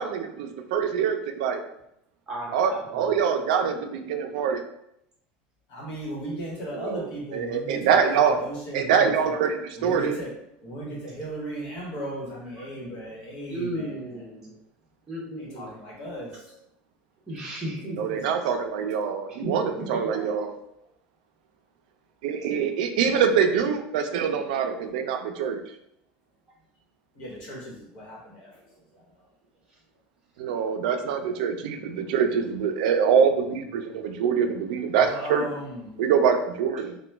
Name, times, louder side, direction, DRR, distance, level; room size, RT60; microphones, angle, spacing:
voice 1, 0.0-1.6 2.5-4.6 6.7-8.4 8.7-10.1 18.0-20.5 22.2-25.6 30.4-35.5 36.0-37.0, right 7 dB, 90° right, 6 dB, 0.4 m, -24 dB
voice 2, 2.3-3.3 13.5-14.5 15.1-15.7 17.3-18.3 19.3-19.5 20.0-20.2, right 1 dB, 15° right, -7 dB, 0.8 m, -35 dB
voice 3, 5.7-9.3 9.8-10.3 10.6-14.2 15.4-16.5 18.2-18.3 27.1-28.5 28.9-29.0 35.0-35.9, right 1 dB, 55° left, -4 dB, 1.2 m, -36 dB
2.9 x 2.2 x 3.3 m, 0.77 s
cardioid pair, 170°, 4 cm